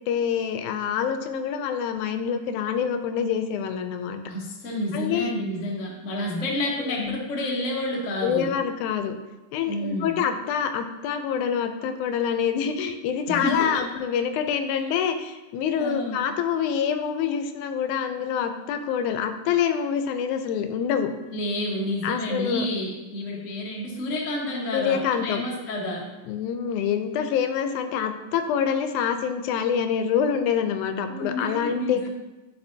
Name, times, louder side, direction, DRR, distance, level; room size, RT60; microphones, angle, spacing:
voice 1, 0.1-4.2 4.9-5.3 7.0-7.2 8.2-9.1 9.5-21.1 22.0-22.7 24.7-25.4 26.3-32.1, left 7 dB, 85° left, 8 dB, 2.0 m, -26 dB
voice 2, 4.2-8.5 9.7-10.2 13.3-13.8 14.7-14.8 15.8-16.2 21.3-26.1 31.1-32.1, left 1 dB, 55° left, -2 dB, 0.8 m, -29 dB
11.0 x 4.7 x 2.7 m, 1.1 s
omnidirectional pair, 3.5 m